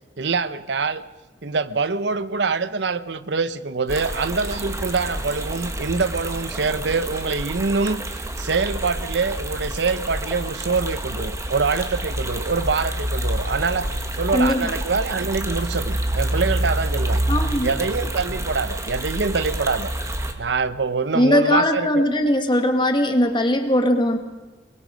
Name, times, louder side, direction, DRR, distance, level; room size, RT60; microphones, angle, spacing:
voice 1, 0.2-1.0 1.4-17.2 17.6-19.9 20.4-22.0, right 4 dB, 65° right, 0.7 m, -25 dB
sound 1, 3.9-20.3, right 1 dB, 15° right, 1.6 m, -28 dB
voice 2, 14.3-14.7 17.3-17.7 21.1-24.2, left 1 dB, 25° left, 1.8 m, -19 dB
24.5 x 22.0 x 5.1 m
head